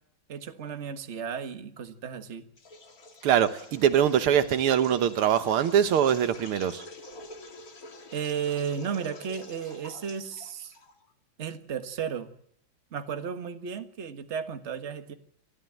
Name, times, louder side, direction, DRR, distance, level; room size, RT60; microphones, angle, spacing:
voice 1, 0.3-2.4 8.1-10.7 11.4-12.3 12.9-15.1, right 7 dB, 35° right, 1.5 m, -34 dB
sound 1, 2.6-11.1, left 2 dB, 45° left, 2.3 m, -47 dB
voice 2, 3.2-6.8, right 9 dB, 90° right, 2.0 m, -23 dB
26.0 x 13.5 x 9.1 m
omnidirectional pair, 2.3 m